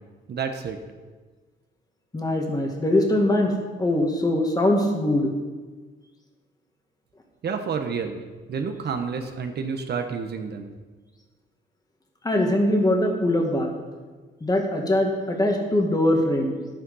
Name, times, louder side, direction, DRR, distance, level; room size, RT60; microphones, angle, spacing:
voice 1, 0.3-0.8 7.4-8.2 8.5-10.7, right 5 dB, 55° right, 6 dB, 1.1 m, -29 dB
voice 2, 2.1-3.5 3.8-5.3 12.2-13.7 14.4-16.6, left 1 dB, 20° left, 1 dB, 2.1 m, -22 dB
11.0 x 9.2 x 5.5 m, 1.4 s
cardioid pair, 90°, 20 cm